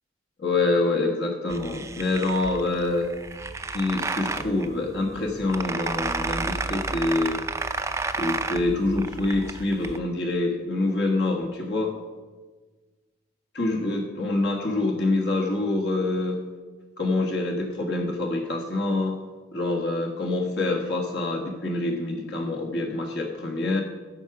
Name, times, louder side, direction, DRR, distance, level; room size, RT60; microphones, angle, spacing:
voice 1, 0.4-3.1 3.7-7.4 8.2-11.9 13.5-16.4 17.0-19.2 19.5-23.8, left 2 dB, 60° left, 0 dB, 1.4 m, -26 dB
sound 1, 1.5-10.0, right 3 dB, 15° right, 0.4 m, -32 dB
14.5 x 5.9 x 6.0 m, 1.4 s
head